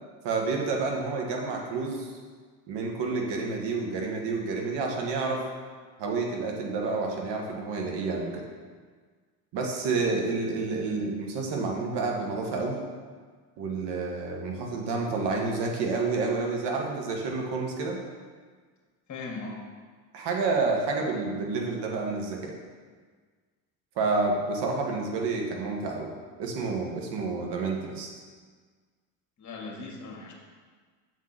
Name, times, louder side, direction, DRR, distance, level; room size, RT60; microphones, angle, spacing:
voice 1, 0.2-2.1 2.7-5.4 6.0-8.4 9.5-12.8 13.6-18.0 20.1-22.5 23.9-26.1 26.4-28.1, right 3 dB, 60° right, 1 dB, 1.7 m, -29 dB
voice 2, 19.1-19.6 29.4-30.3, left 3 dB, 35° left, -1 dB, 1.9 m, -38 dB
7.2 x 4.1 x 5.9 m, 1.6 s
supercardioid pair, 80°, 47 cm